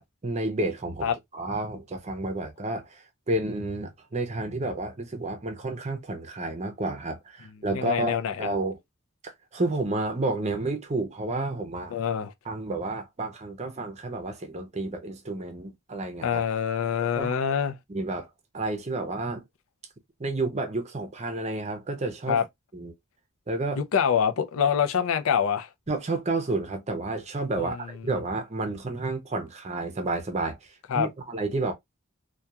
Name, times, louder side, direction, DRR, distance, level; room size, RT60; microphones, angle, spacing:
voice 1, 0.0-8.8 9.2-12.0 12.4-16.4 17.0-17.3 17.9-18.3 18.5-19.4 20.2-22.4 22.7-22.9 23.5-23.8 25.9-30.6 30.9-31.7, right 2 dB, 30° right, 0.6 m, -30 dB
voice 2, 7.7-8.5 11.9-12.3 16.2-17.8 22.3-22.4 23.8-25.7 27.6-27.7 30.9-31.1, left 7 dB, 75° left, 0.4 m, -25 dB
2.8 x 2.3 x 2.2 m
head